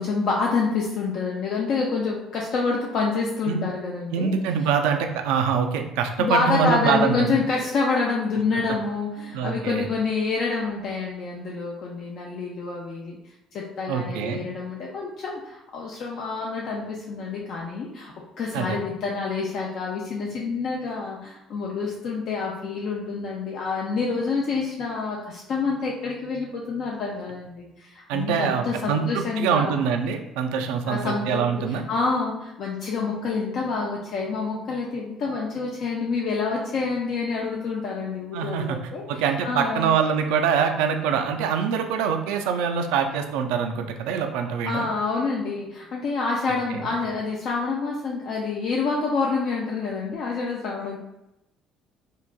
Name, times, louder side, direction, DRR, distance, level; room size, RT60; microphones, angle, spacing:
voice 1, 0.0-4.3 6.2-13.2 13.5-29.7 30.9-39.1 39.4-39.9 44.6-51.0, left 4 dB, 55° left, -2 dB, 0.5 m, -27 dB
voice 2, 4.1-7.4 9.3-9.9 13.9-14.4 18.5-18.8 28.1-31.8 38.3-38.8 39.1-44.9 46.7-46.8, right 7 dB, 70° right, 5 dB, 0.3 m, -24 dB
4.6 x 2.5 x 2.2 m, 0.91 s
hypercardioid pair, 55°, 0 cm